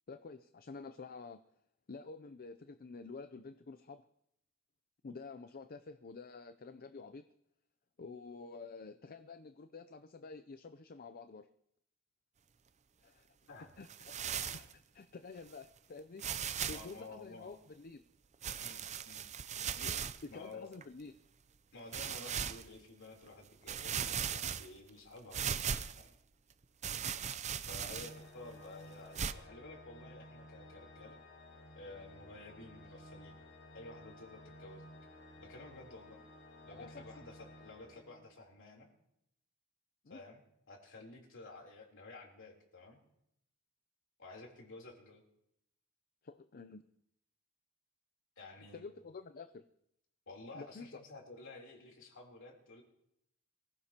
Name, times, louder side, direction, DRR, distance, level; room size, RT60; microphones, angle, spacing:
voice 1, 0.1-1.4 1.9-4.0 5.0-7.2 8.0-11.5 13.0-13.3 13.8-14.1 14.5-16.3 16.7-18.0 19.7-21.1 27.9-28.0 36.7-37.0 40.0-40.2 46.2-46.8 48.7-49.6 50.5-51.0, left 4 dB, 45° left, 10 dB, 0.5 m, -49 dB
sound 1, 13.9-14.7 15.5-15.6 16.2-16.9 18.4-20.2 20.8-20.9 21.9-22.6 23.3-23.4 23.7-24.9 25.3-26.1 26.8-28.3 29.1-29.3, right 8 dB, 30° right, 0.5 m, -38 dB
voice 2, 16.7-17.6 18.6-19.3 19.5-19.8 20.3-20.8 21.7-25.6 25.9-26.1 27.6-31.2 31.7-33.4 33.7-34.9 35.4-36.2 36.6-38.9 40.1-43.0 44.2-45.2 48.4-48.8 50.3-52.8, left 2 dB, 60° left, 0 dB, 3.5 m, -52 dB
Organ, 27.7-38.5, left 1 dB, 80° left, 6.3 m, -55 dB
24.0 x 16.0 x 2.9 m, 0.78 s
head